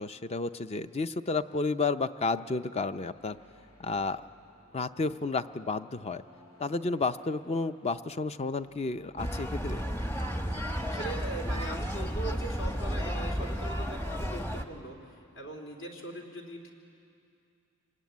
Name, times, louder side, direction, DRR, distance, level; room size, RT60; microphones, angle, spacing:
voice 1, 0.0-3.4 3.8-4.2 4.7-6.2 6.6-9.8, left 3 dB, 30° left, 11 dB, 0.5 m, -31 dB
sound 1, 3.1-11.0, left 1 dB, 80° left, 4.5 m, -60 dB
sound 2, 9.2-14.6, equal, 10° left, 1.0 m, -32 dB
voice 2, 10.9-16.7, right 1 dB, 65° left, 2 dB, 3.5 m, -41 dB
26.5 x 19.0 x 9.4 m, 2.5 s
head